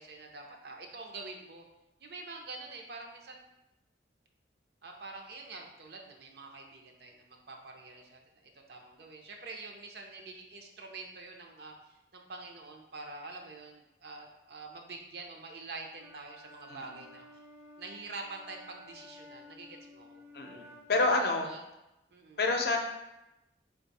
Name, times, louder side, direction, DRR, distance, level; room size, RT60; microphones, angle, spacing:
voice 1, 0.0-1.7 2.0-3.4 4.8-17.3 17.8-20.2 21.0-21.6 22.1-22.4, right 3 dB, 65° right, 2 dB, 0.6 m, -46 dB
Wind instrument woodwind instrument, 15.9-21.1, left 1 dB, 15° right, 0.5 m, -54 dB
voice 2, 20.3-21.5 22.4-22.8, left 2 dB, 60° left, 3 dB, 0.5 m, -28 dB
4.5 x 2.3 x 4.0 m, 0.93 s
head